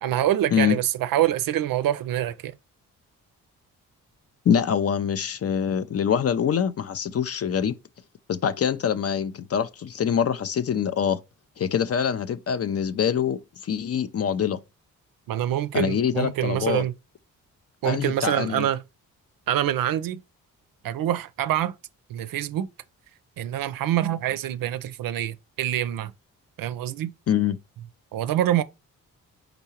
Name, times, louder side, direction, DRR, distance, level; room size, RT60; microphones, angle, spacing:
voice 1, 0.0-2.5 15.3-16.9 17.8-18.8 19.5-20.2 20.8-21.7 22.1-22.7 23.4-26.1 26.6-27.1 28.1-28.6, right 12 dB, 60° right, 0.5 m, -25 dB
voice 2, 4.5-7.7 8.3-11.2 11.6-14.6 15.7-16.8 17.8-18.7 27.3-27.6, left 8 dB, 40° left, 0.5 m, -24 dB
4.5 x 4.0 x 2.8 m
hypercardioid pair, 40°, 38 cm